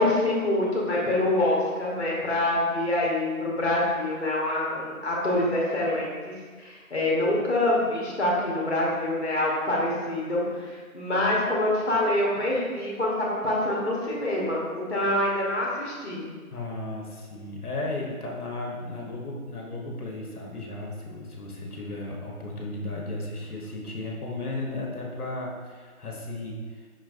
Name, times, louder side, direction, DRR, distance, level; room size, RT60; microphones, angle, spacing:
voice 1, 0.0-6.3 6.6-16.2, left 1 dB, 50° left, -4 dB, 0.8 m, -25 dB
voice 2, 16.5-26.9, left 2 dB, 90° left, -1 dB, 1.0 m, -35 dB
5.7 x 2.4 x 2.5 m, 1.5 s
figure-of-eight pair, 175°, 44 cm